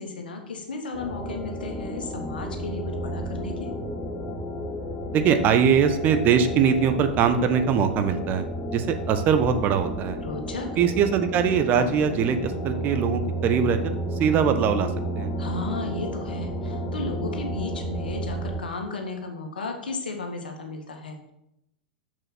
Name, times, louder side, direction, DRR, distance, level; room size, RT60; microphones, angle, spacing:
voice 1, 0.0-3.7 10.2-10.7 15.4-21.3, left 3 dB, 75° left, 4 dB, 1.7 m, -34 dB
sound 1, 0.9-18.6, right 1 dB, 20° left, 1.7 m, -32 dB
voice 2, 5.1-8.4 8.7-10.2 10.8-14.9 15.2-15.3, right 7 dB, 40° right, 9 dB, 1.1 m, -22 dB
6.9 x 6.8 x 6.1 m, 0.81 s
figure-of-eight pair, 95°, 5 cm